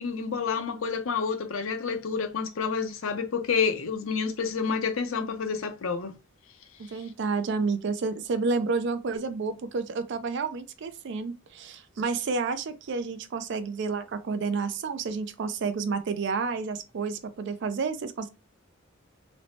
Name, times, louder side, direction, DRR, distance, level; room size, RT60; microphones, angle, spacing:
voice 1, 0.0-6.1, left 5 dB, 75° left, 0.5 m, -29 dB
voice 2, 6.8-18.3, right 4 dB, 60° right, 0.4 m, -30 dB
3.1 x 2.0 x 2.7 m
head